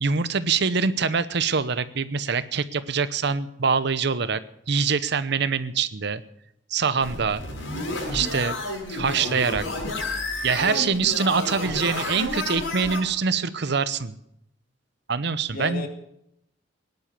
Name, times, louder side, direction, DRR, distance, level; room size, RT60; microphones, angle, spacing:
voice 1, 0.0-4.4 4.7-6.2 6.7-7.4 8.1-8.6 8.9-9.6 10.4-14.1 15.1-15.9, right 5 dB, 60° right, 14 dB, 0.8 m, -24 dB
sound 1, 7.0-13.0, left 2 dB, 85° left, 7.2 m, -31 dB
voice 2, 10.6-11.2 15.5-15.9, left 1 dB, 50° left, 5 dB, 2.3 m, -34 dB
18.5 x 10.5 x 6.8 m, 0.78 s
head